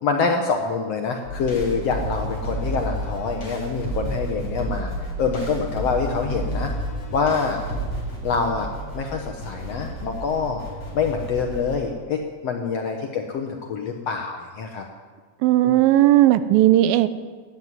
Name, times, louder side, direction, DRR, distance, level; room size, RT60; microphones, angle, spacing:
voice 1, 0.0-4.9 5.2-6.7 7.1-7.6 8.2-8.7 8.9-10.6 10.9-14.8 15.6-16.1, left 5 dB, 70° left, 3 dB, 1.6 m, -26 dB
sound 1, 1.2-11.8, right 1 dB, 40° left, 5.8 m, -31 dB
voice 2, 15.4-17.1, right 14 dB, 85° right, 14 dB, 2.4 m, -16 dB
15.0 x 9.0 x 9.6 m, 1.5 s
omnidirectional pair, 4.0 m